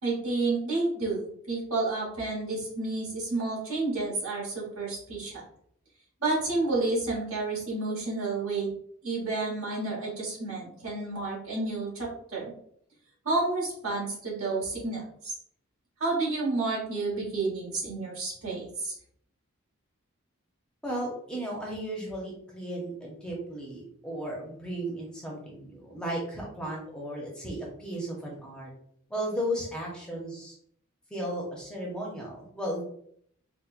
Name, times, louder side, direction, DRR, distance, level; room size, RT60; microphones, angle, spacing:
voice 1, 0.0-5.4 6.2-8.7 9.0-12.5 13.2-15.3 16.0-18.9, right 3 dB, 70° right, -3 dB, 1.2 m, -30 dB
voice 2, 20.8-28.7 29.1-30.5 31.1-32.8, equal, 5° left, -3 dB, 0.6 m, -35 dB
4.3 x 2.0 x 2.4 m, 0.66 s
head